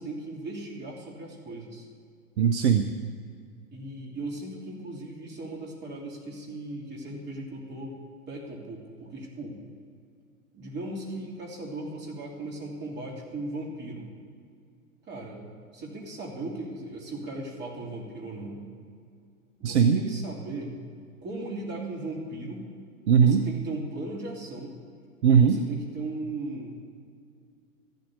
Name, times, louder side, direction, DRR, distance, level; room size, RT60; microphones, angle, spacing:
voice 1, 0.0-1.9 3.7-8.0 8.3-9.6 10.5-14.1 15.1-15.5 15.7-18.6 19.6-20.8 21.2-22.7 23.2-24.7 25.4-26.8, right 2 dB, 25° right, -1 dB, 3.1 m, -37 dB
voice 2, 2.4-2.9 19.6-20.0 23.1-23.4 25.2-25.6, right 7 dB, 50° right, 9 dB, 0.8 m, -19 dB
14.0 x 12.0 x 6.8 m, 2.3 s
figure-of-eight pair, 105°, 44 cm